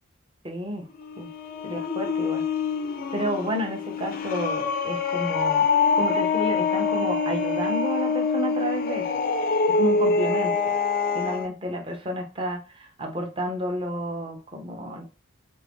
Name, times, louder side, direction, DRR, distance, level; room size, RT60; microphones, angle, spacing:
voice 1, 0.4-0.9 1.2-1.3 1.6-2.4 3.1-5.7 5.9-9.1 9.7-10.5 11.1-15.0, equal, 25° right, 3 dB, 0.6 m, -31 dB
sound 1, 0.9-11.5, left 4 dB, 45° left, 0.3 m, -25 dB
2.9 x 2.6 x 3.4 m, 0.33 s
head